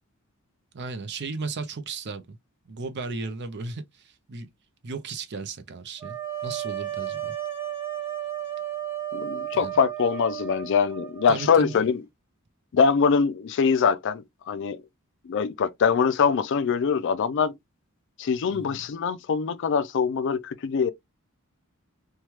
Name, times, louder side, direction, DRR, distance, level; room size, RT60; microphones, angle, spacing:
voice 1, 0.7-2.4 2.7-4.5 4.8-7.3 9.5-9.7 11.3-11.9 18.5-18.9, right 4 dB, 55° right, 0.6 m, -35 dB
sound 1, 6.0-11.9, right 12 dB, 10° right, 1.0 m, -34 dB
voice 2, 9.1-12.0 12.7-14.8 15.3-17.5 18.2-20.9, left 6 dB, 55° left, 0.4 m, -23 dB
3.1 x 2.3 x 2.8 m
head